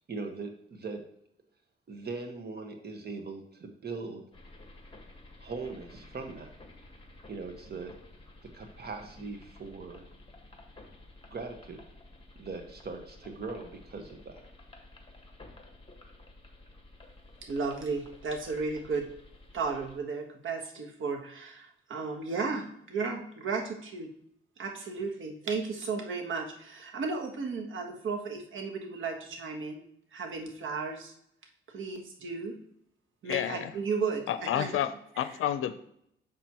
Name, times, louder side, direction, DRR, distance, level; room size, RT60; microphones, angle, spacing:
voice 1, 0.1-1.0 1.9-4.2 5.4-6.5 7.3-7.9 8.5-10.0 11.3-11.8 12.4-14.4, right 4 dB, 50° right, 4 dB, 1.4 m, -40 dB
sound 1, 4.3-20.0, left 2 dB, 25° left, 1.5 m, -53 dB
voice 2, 17.4-19.1 19.5-24.1 24.6-29.8 30.1-31.1 31.7-32.6 33.2-34.8, right 4 dB, 70° right, 2 dB, 1.4 m, -34 dB
voice 3, 33.2-33.7 34.3-34.9 35.2-35.8, left 11 dB, 85° left, 12 dB, 0.5 m, -30 dB
7.1 x 6.1 x 2.9 m, 0.71 s
cardioid pair, 80°, 21 cm